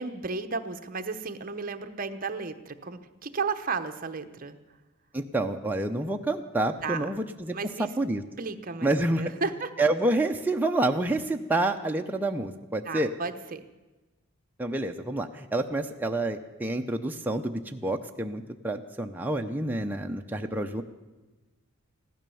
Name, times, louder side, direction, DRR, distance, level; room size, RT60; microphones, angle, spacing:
voice 1, 0.0-4.6 6.8-7.0 7.5-7.9 8.4-9.7 12.8-13.6, right 4 dB, 40° right, 7 dB, 0.8 m, -33 dB
voice 2, 5.1-7.5 7.8-8.2 8.8-9.3 9.8-13.1 14.6-20.8, right 2 dB, 10° right, 3 dB, 0.6 m, -28 dB
15.5 x 12.5 x 7.0 m, 1.1 s
head